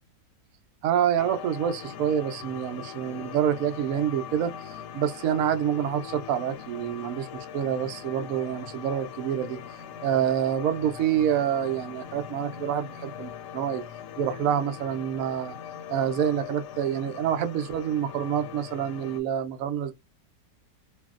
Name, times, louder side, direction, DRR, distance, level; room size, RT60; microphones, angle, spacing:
voice 1, 0.8-9.6 10.0-13.8 14.2-15.5 15.9-19.9, right 9 dB, 70° right, 0.8 m, -27 dB
sound 1, 1.2-19.2, left 9 dB, 75° left, 1.1 m, -41 dB
2.7 x 2.6 x 2.4 m
omnidirectional pair, 1.9 m